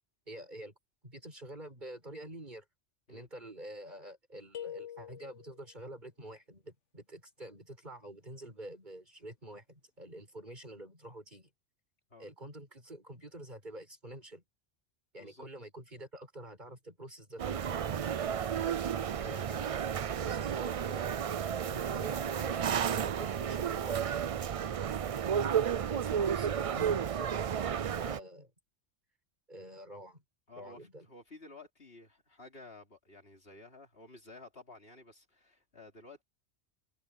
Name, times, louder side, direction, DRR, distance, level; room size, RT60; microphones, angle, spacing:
voice 1, 0.3-0.7 1.0-2.6 3.1-11.5 12.2-14.4 15.1-18.7 19.0-19.8 20.0-21.0 21.6-24.0 25.1-28.5 29.5-30.2 30.6-31.1, right 1 dB, 40° right, 6.8 m, -48 dB
sound 1, 4.5-5.7, left 10 dB, 80° left, 2.0 m, -44 dB
sound 2, 17.4-28.2, right 8 dB, 65° right, 0.3 m, -32 dB
voice 2, 30.5-36.2, left 2 dB, 55° left, 3.7 m, -53 dB
omnidirectional pair, 1.2 m